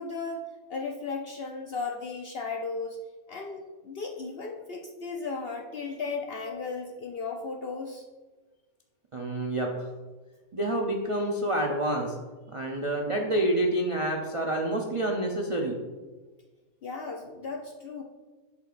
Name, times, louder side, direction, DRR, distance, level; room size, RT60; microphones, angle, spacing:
voice 1, 0.0-3.0 3.3-8.0 16.8-18.0, left 4 dB, 60° left, 2 dB, 0.6 m, -35 dB
voice 2, 9.1-9.9 10.5-12.2 12.5-15.8, right 1 dB, 45° right, 0 dB, 0.4 m, -28 dB
8.1 x 6.5 x 2.5 m, 1.3 s
omnidirectional pair, 1.5 m